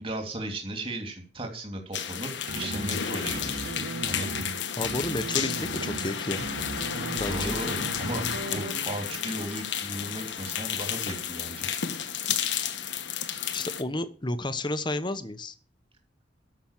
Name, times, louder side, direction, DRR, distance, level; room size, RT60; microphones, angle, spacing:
voice 1, 0.0-3.7 4.0-4.5 7.3-8.2 8.5-11.7, right 1 dB, 30° right, 4 dB, 3.0 m, -36 dB
sound 1, 1.9-13.8, left 8 dB, 70° left, 1.3 m, -32 dB
sound 2, 2.5-9.0, right 2 dB, 80° right, 1.7 m, -37 dB
voice 2, 4.8-6.5 7.2-7.6 13.5-15.5, left 2 dB, 25° left, 12 dB, 1.0 m, -31 dB
13.0 x 6.1 x 7.4 m, 0.39 s
head